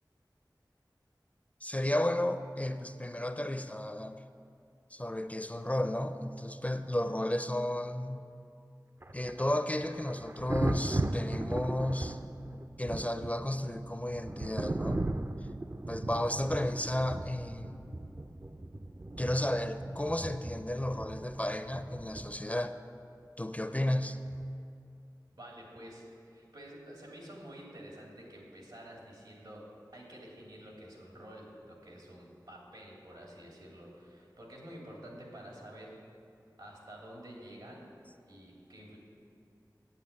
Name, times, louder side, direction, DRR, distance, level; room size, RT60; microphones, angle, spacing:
voice 1, 1.6-4.2 4.9-8.3 9.1-12.2 12.8-15.1 15.9-17.8 19.2-22.7 23.4-24.2, left 1 dB, 20° left, 9 dB, 0.5 m, -33 dB
Thunder, 9.0-22.7 24.3-24.5, right 2 dB, 35° right, 0.4 m, -38 dB
voice 2, 25.4-29.6 29.9-36.0 36.6-37.9 38.2-39.0, equal, 85° right, -3 dB, 3.0 m, -49 dB
8.9 x 8.2 x 8.3 m, 2.5 s
wide cardioid pair, 50°, 8 cm